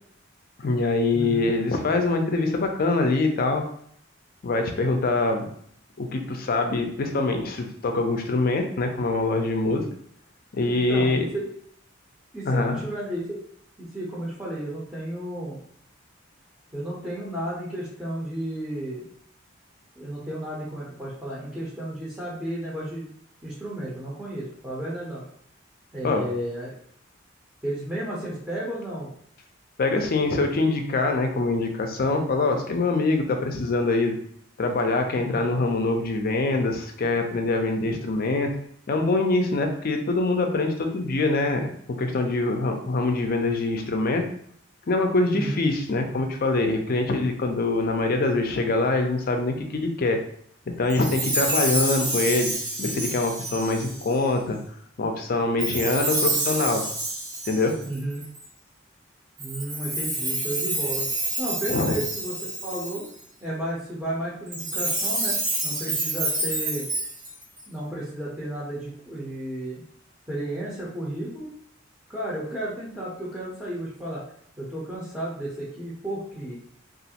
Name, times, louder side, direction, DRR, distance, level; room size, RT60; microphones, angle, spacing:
voice 1, 0.6-3.6 4.4-5.5 6.0-9.8 10.5-11.2 12.5-12.8 26.0-26.2 29.8-34.1 34.6-38.5 38.9-41.7 42.0-44.2 44.9-50.2 50.8-52.5 52.8-54.6 55.0-56.8 57.5-57.7 61.7-61.9, left 2 dB, 50° left, 4 dB, 0.4 m, -24 dB
voice 2, 1.1-1.6 10.7-11.5 12.3-13.4 13.8-15.6 16.7-19.1 20.0-23.1 23.4-25.2 25.9-26.7 27.6-29.1 35.2-35.5 37.8-38.1 45.3-45.6 57.8-58.2 59.4-61.1 61.4-63.0 63.4-66.9 67.7-69.8 70.3-71.5 72.1-74.2 74.6-76.6, right 1 dB, 10° right, -8 dB, 0.6 m, -33 dB
Chime, 50.9-54.2 55.6-58.4 59.4-63.2 64.5-67.6, right 2 dB, 70° right, 1.1 m, -28 dB
3.0 x 2.4 x 2.8 m, 0.66 s
head